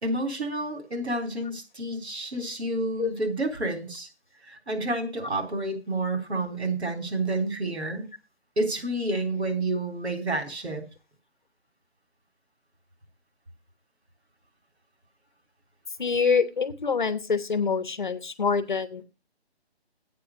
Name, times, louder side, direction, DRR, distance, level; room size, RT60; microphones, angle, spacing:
voice 1, 0.0-4.1 4.5-8.1 8.6-10.9, right 2 dB, 85° right, 5 dB, 3.7 m, -29 dB
voice 2, 16.0-19.0, left 5 dB, 45° left, 13 dB, 1.0 m, -25 dB
8.4 x 6.0 x 8.0 m, 0.30 s
hypercardioid pair, 180°, 32 cm